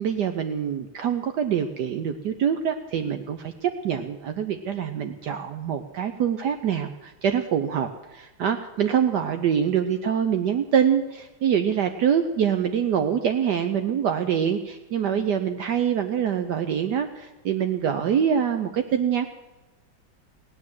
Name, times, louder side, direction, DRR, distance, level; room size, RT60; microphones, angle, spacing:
voice 1, 0.0-19.2, right 8 dB, 65° right, 8 dB, 1.2 m, -25 dB
17.0 x 9.6 x 7.7 m, 1.1 s
omnidirectional pair, 2.2 m